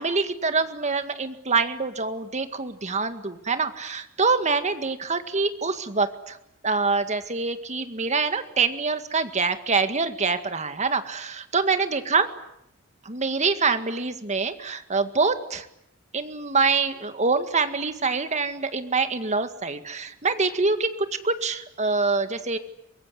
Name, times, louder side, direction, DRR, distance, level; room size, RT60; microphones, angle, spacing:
voice 1, 0.0-6.4 6.6-12.3 13.1-15.7 16.1-20.9 21.2-22.6, right 4 dB, 35° right, 9 dB, 2.0 m, -25 dB
24.0 x 23.0 x 9.9 m, 0.79 s
head